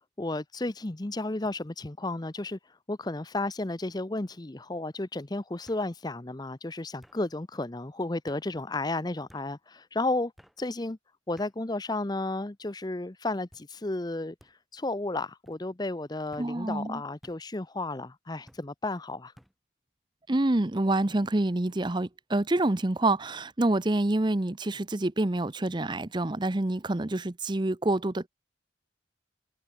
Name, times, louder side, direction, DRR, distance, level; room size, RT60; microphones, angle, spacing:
voice 1, 0.2-2.6 2.9-10.3 10.6-11.0 11.3-14.3 14.7-19.3, left 2 dB, 20° left, 0.7 m, -33 dB
sound 1, 2.4-2.6 3.0-3.5 4.6-4.7 5.7-5.9 7.0-7.2 8.3-8.5 9.3-9.5 10.4-10.6 11.4-11.6 12.3-12.7 13.5-13.7 14.4-14.6 15.4-15.6 16.3-16.5 17.2-17.4 18.5-18.7 19.4-19.6, equal, ahead, 7.9 m, -57 dB
voice 2, 16.4-17.0 20.3-28.3, right 2 dB, 25° right, 0.7 m, -27 dB
head